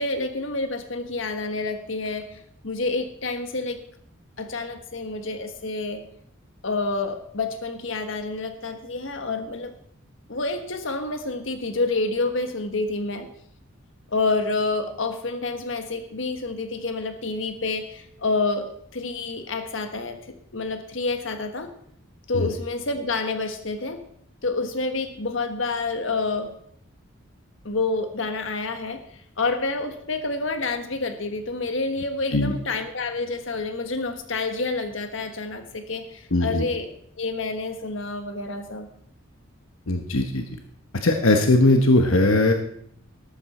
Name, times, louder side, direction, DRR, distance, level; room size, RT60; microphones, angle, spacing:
voice 1, 0.0-2.3 2.6-3.8 4.4-6.0 6.6-9.7 10.3-13.3 14.1-21.7 22.3-24.0 24.4-26.5 27.6-36.9 37.2-38.9, left 3 dB, 70° left, 7 dB, 1.5 m, -28 dB
voice 2, 36.3-36.6 39.9-40.4 41.0-42.5, left 2 dB, 85° left, 4 dB, 1.2 m, -19 dB
13.5 x 12.5 x 4.3 m, 0.65 s
head